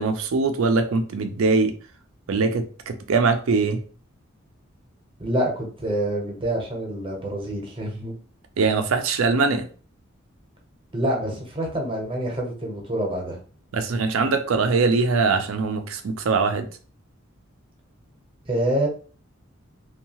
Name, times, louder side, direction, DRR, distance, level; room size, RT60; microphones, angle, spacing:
voice 1, 0.0-1.7 2.3-3.8 8.6-9.7 13.7-16.7, right 4 dB, 75° right, 7 dB, 0.4 m, -22 dB
voice 2, 5.2-8.2 10.9-13.4 18.5-18.9, right 1 dB, 25° right, 0 dB, 0.7 m, -26 dB
2.7 x 2.3 x 2.8 m, 0.40 s
head